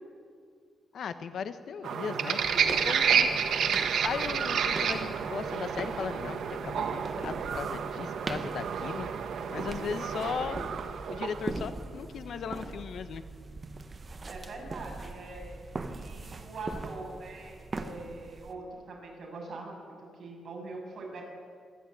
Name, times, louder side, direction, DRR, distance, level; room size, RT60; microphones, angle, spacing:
voice 1, 0.9-3.3 3.9-9.1 9.5-10.7 11.1-13.2, left 7 dB, 65° left, 10 dB, 1.2 m, -37 dB
sound 1, 1.8-11.6, right 7 dB, 70° right, 1.6 m, -30 dB
sound 2, 2.4-18.5, right 3 dB, 30° right, 1.2 m, -41 dB
voice 2, 14.3-21.2, right 2 dB, 50° right, -1 dB, 7.3 m, -43 dB
26.5 x 11.0 x 8.9 m, 2.1 s
cardioid pair, 115°, 0 cm